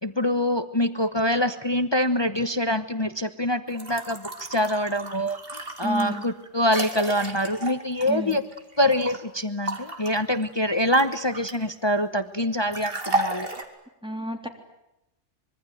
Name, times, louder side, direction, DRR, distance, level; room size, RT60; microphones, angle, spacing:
voice 1, 0.0-8.4 8.8-13.5, left 1 dB, 25° left, 10 dB, 1.0 m, -25 dB
sound 1, 3.7-9.2 9.7-11.8 12.7-13.6, right 2 dB, 50° right, 2.9 m, -33 dB
voice 2, 5.8-6.2 8.1-8.4 14.0-14.5, equal, 5° right, 3 dB, 3.3 m, -30 dB
25.5 x 23.0 x 9.3 m, 0.93 s
omnidirectional pair, 1.3 m